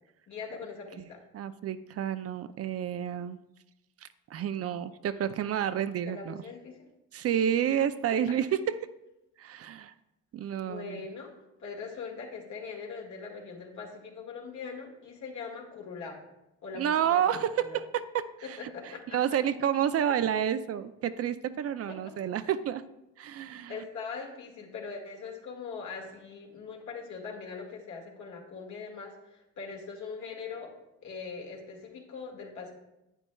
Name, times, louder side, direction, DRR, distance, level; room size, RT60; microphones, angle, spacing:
voice 1, 0.3-1.2 6.1-6.9 10.6-16.2 16.6-17.3 17.6-17.8 18.4-19.2 20.0-20.2 21.9-22.1 23.7-30.7 31.0-32.7, left 5 dB, 70° left, -1 dB, 1.9 m, -41 dB
voice 2, 1.3-3.4 4.0-6.4 7.1-8.8 9.4-9.9 10.3-11.0 16.7-22.8 23.2-23.8, right 9 dB, 50° right, 13 dB, 0.5 m, -30 dB
9.8 x 8.9 x 2.3 m, 0.93 s
cardioid pair, 90°, 30 cm